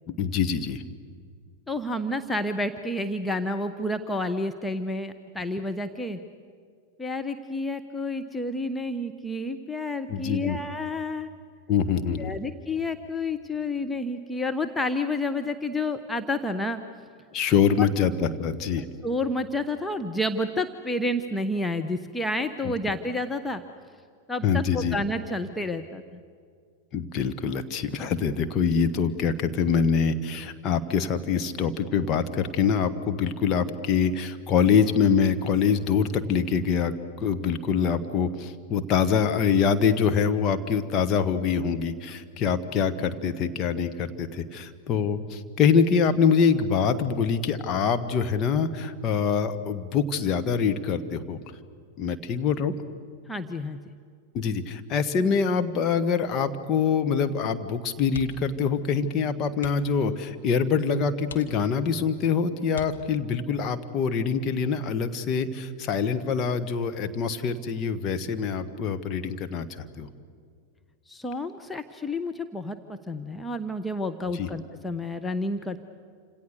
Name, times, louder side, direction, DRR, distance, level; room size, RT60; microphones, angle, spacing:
voice 1, 0.1-0.8 10.1-10.6 11.7-12.4 17.3-18.8 22.6-22.7 24.4-25.0 26.9-51.4 52.0-52.7 54.3-70.1 74.3-74.5, left 6 dB, 35° left, 8 dB, 1.7 m, -25 dB
voice 2, 1.7-6.2 7.0-11.3 12.2-16.8 18.8-23.6 24.3-26.0 53.3-53.8 71.1-75.8, left 1 dB, 10° left, 6 dB, 1.1 m, -30 dB
sound 1, 58.1-58.6 58.9-59.1 59.5-60.0 60.6-60.7 61.2-62.0 62.7-63.5 65.0-65.4 65.7-65.8, left 6 dB, 70° left, 1.8 m, -42 dB
28.5 x 27.0 x 6.9 m, 2.2 s
figure-of-eight pair, 90°, 0 cm